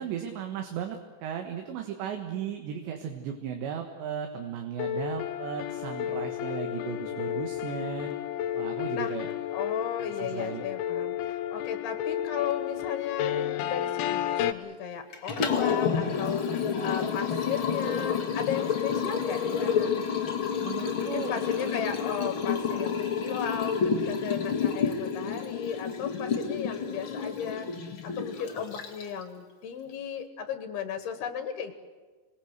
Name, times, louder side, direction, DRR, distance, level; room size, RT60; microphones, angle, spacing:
voice 1, 0.0-8.1 8.6-9.3 10.2-10.6 20.6-21.3, right 8 dB, 75° right, 4 dB, 3.6 m, -36 dB
sound 1, 4.8-14.5, left 11 dB, 90° left, 3.4 m, -32 dB
voice 2, 9.5-19.9 21.0-27.7 28.0-31.7, left 7 dB, 65° left, 8 dB, 3.0 m, -35 dB
Liquid, 15.1-29.2, left 6 dB, 50° left, 1.6 m, -29 dB
27.5 x 20.5 x 8.1 m, 1.3 s
omnidirectional pair, 5.3 m